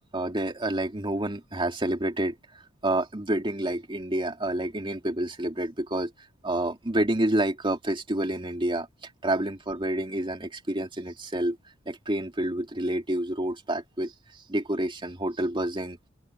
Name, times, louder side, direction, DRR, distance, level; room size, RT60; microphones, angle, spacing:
voice 1, 0.1-2.4 2.8-6.1 6.4-8.9 9.2-11.6 11.9-14.1 14.5-16.0, right 1 dB, 25° right, 2.5 m, -28 dB
open air
head